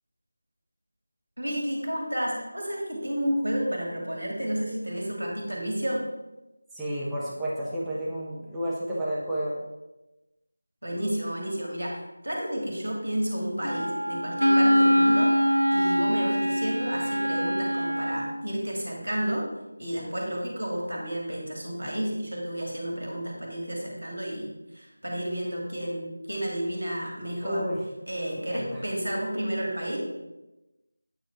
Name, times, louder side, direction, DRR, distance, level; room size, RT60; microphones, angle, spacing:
voice 1, 1.4-6.0 10.8-15.3 15.7-19.5 19.8-27.7 28.1-30.0, equal, 65° right, -1 dB, 2.4 m, -31 dB
voice 2, 6.7-9.6 27.4-27.8 28.3-28.8, equal, ahead, -10 dB, 1.0 m, -31 dB
Wind instrument woodwind instrument, 13.6-18.4, equal, 90° right, 0.8 m, -23 dB
8.8 x 4.2 x 4.6 m, 1.0 s
figure-of-eight pair, 165°, 0 cm